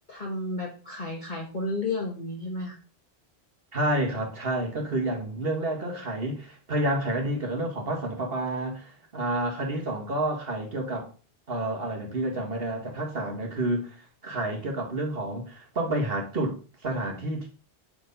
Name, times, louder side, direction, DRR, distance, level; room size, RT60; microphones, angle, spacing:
voice 1, 0.1-2.8, left 2 dB, 45° left, 1.6 m, -32 dB
voice 2, 3.7-11.1 11.5-14.0 14.2-17.5, right 1 dB, 60° right, 1.9 m, -29 dB
8.9 x 4.5 x 5.3 m
omnidirectional pair, 1.1 m